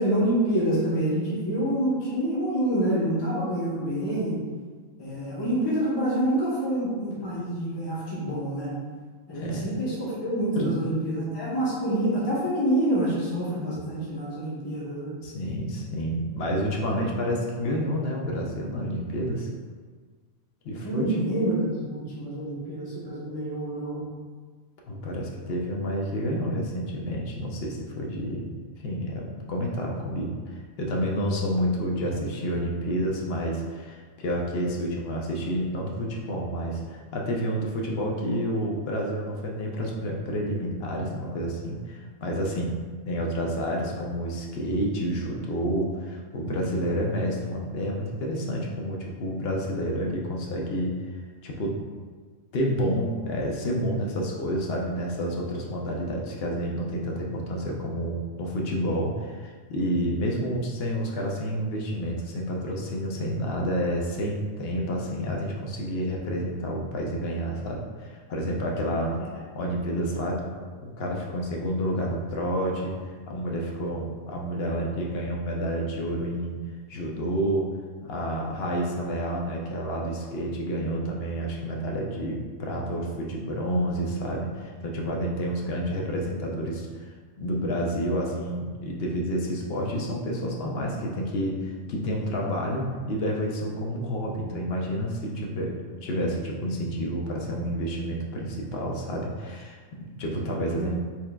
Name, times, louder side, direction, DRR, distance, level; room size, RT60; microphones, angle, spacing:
voice 1, 0.0-4.4 5.0-8.7 9.3-15.1 20.8-24.0 100.8-100.9, right 1 dB, 25° left, -8 dB, 0.7 m, -27 dB
voice 2, 9.3-9.7 10.6-10.8 15.2-19.5 20.6-21.2 24.9-28.6 28.8-42.7 43.0-51.0 51.4-51.8 52.5-69.2 69.5-70.5 70.8-72.9 73.3-76.6 76.9-77.7 78.0-87.1 87.4-95.7 96.0-100.9, equal, 60° left, -1 dB, 0.7 m, -29 dB
4.4 x 3.5 x 2.2 m, 1.5 s
omnidirectional pair, 1.5 m